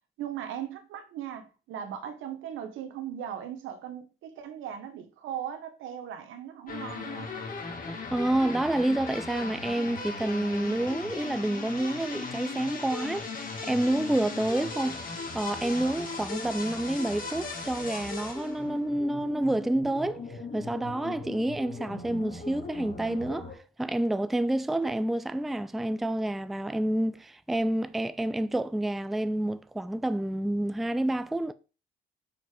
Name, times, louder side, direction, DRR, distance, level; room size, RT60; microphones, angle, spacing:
voice 1, 0.2-7.3, right 9 dB, 90° right, 1.0 m, -38 dB
sound 1, 6.7-23.5, left 3 dB, 45° left, 2.0 m, -38 dB
voice 2, 8.1-15.0 15.3-20.2 20.5-23.5 23.8-31.5, right 1 dB, ahead, 0.4 m, -28 dB
5.5 x 4.5 x 4.8 m
cardioid pair, 90°, 20 cm